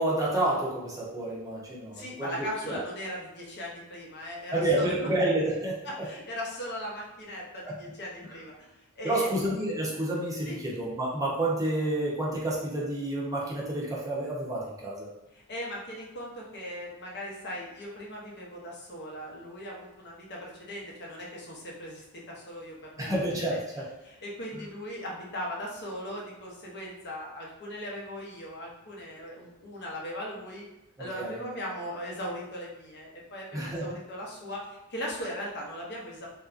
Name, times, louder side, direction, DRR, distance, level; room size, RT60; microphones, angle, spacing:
voice 1, 0.0-2.3 2.6-2.8 4.5-5.8 7.6-7.8 9.0-15.1 23.0-23.8 31.0-31.4 33.5-33.9, right 1 dB, 15° right, -5 dB, 0.7 m, -29 dB
voice 2, 1.9-4.9 5.8-8.7 9.0-9.3 10.5-10.7 15.3-23.1 23.5-23.6 24.0-30.7 31.0-36.3, equal, 50° left, -3 dB, 0.8 m, -39 dB
3.4 x 2.6 x 2.5 m, 0.94 s
head